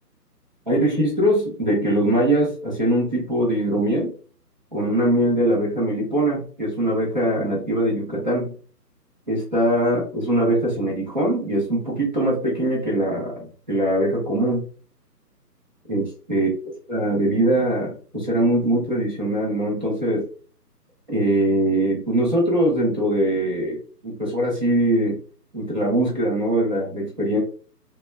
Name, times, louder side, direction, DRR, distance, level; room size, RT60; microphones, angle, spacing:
voice 1, 0.7-4.1 4.7-8.5 9.3-14.6 15.9-16.5 16.9-20.2 21.1-23.8 24.0-25.2 25.5-27.4, right 1 dB, 30° right, -4 dB, 0.8 m, -22 dB
3.4 x 2.2 x 3.1 m, 0.41 s
figure-of-eight pair, 155°, 49 cm